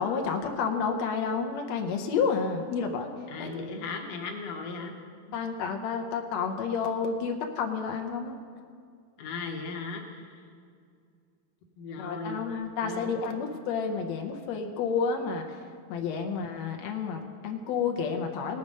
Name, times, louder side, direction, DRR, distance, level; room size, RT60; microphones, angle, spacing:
voice 1, 0.0-3.1 3.4-3.5 5.3-8.4 12.0-15.6 15.9-18.6, left 5 dB, 90° left, 4 dB, 1.5 m, -30 dB
voice 2, 3.3-4.9 9.2-10.4 11.8-12.4 12.8-13.2, left 4 dB, 65° left, 3 dB, 1.7 m, -37 dB
18.5 x 6.7 x 5.3 m, 2.3 s
omnidirectional pair, 4.1 m